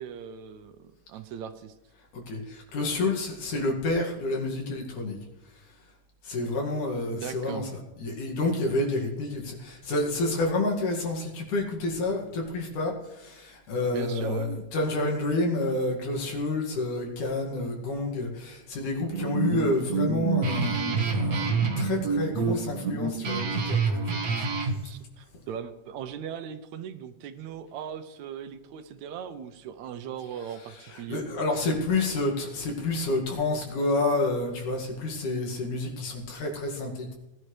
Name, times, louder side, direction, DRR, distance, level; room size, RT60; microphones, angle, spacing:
voice 1, 0.0-1.8 7.1-7.7 13.9-14.6 24.6-31.2, right 8 dB, 75° right, 10 dB, 1.8 m, -38 dB
voice 2, 2.1-5.2 6.2-24.4 30.4-37.1, left 2 dB, 70° left, 0 dB, 3.5 m, -29 dB
Guitar, 19.0-24.8, right 4 dB, 50° right, 1.1 m, -27 dB
19.0 x 11.0 x 3.3 m, 0.97 s
omnidirectional pair, 3.8 m